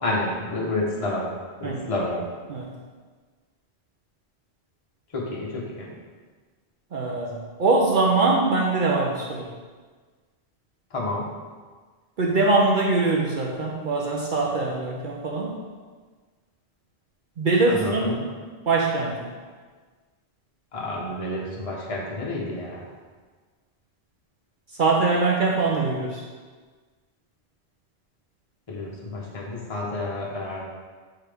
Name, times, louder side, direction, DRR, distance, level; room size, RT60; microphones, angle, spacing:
voice 1, 0.0-1.3 1.6-2.3 5.1-5.9 10.9-11.2 17.6-18.3 20.7-22.8 28.7-30.6, left 2 dB, 35° left, -4 dB, 1.0 m, -29 dB
voice 2, 6.9-9.5 12.2-15.5 17.4-18.1 18.7-19.3 24.8-26.2, right 3 dB, 55° right, -1 dB, 0.8 m, -22 dB
8.0 x 3.7 x 3.4 m, 1.4 s
omnidirectional pair, 1.1 m